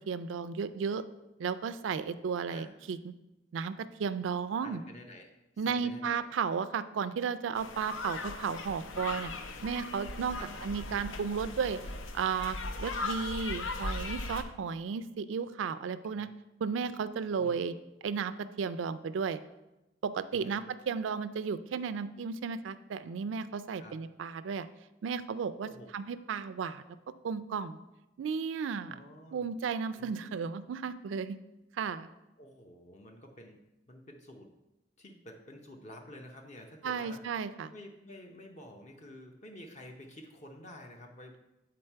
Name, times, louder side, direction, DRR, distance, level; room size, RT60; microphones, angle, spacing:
voice 1, 0.1-1.0 1.4-3.1 3.5-4.8 5.6-9.3 9.6-10.4 10.6-11.8 12.1-16.3 16.6-17.7 18.0-19.4 20.0-24.7 25.0-25.7 25.9-26.8 27.2-27.8 28.2-29.0 29.3-31.4 31.8-32.1 36.8-37.7, right 6 dB, 75° right, 13 dB, 0.3 m, -34 dB
voice 2, 4.6-5.3 5.5-6.3 10.3-10.6 16.1-16.2 17.3-17.6 20.3-20.6 23.8-24.0 25.6-25.9 28.9-29.4 29.9-30.4 32.4-33.6 33.9-34.5 35.0-37.2 37.7-41.4, left 1 dB, 40° left, 3 dB, 0.7 m, -50 dB
sound 1, 7.6-14.4, left 3 dB, 85° left, 0.6 m, -38 dB
7.6 x 3.9 x 4.5 m, 0.97 s
head